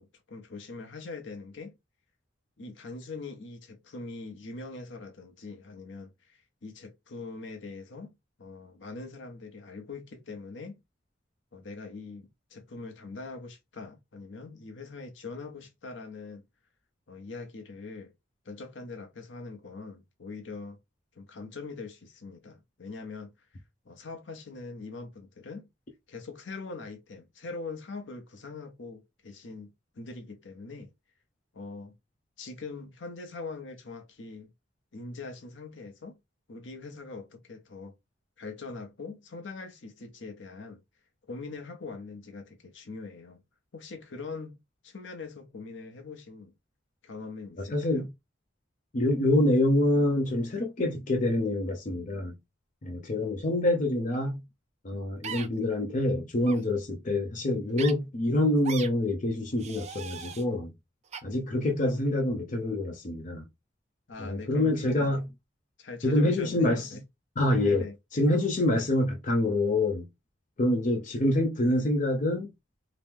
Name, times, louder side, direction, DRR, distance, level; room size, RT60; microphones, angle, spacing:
voice 1, 0.0-1.7 2.6-10.8 11.5-16.5 17.1-18.1 18.4-20.8 21.1-23.3 23.8-25.7 26.1-30.9 31.5-32.0 32.4-34.5 34.9-36.2 36.5-37.9 38.4-40.8 41.3-43.4 43.7-44.6 44.8-46.5 47.0-48.1 64.1-65.1 65.8-67.0 67.6-67.9, left 3 dB, 75° left, 0.7 m, -42 dB
voice 2, 47.7-48.1 48.9-52.3 52.8-54.4 54.8-60.7 61.2-63.4 64.2-65.3 66.0-67.0 67.4-67.9 68.1-70.1 70.6-72.5, left 1 dB, 45° left, 0.6 m, -26 dB
sound 1, 55.2-55.5 56.4-56.6 57.8-57.9 58.6-58.9 59.6-60.4 61.1-61.2, right 6 dB, 35° right, 0.4 m, -38 dB
2.9 x 2.0 x 3.5 m
head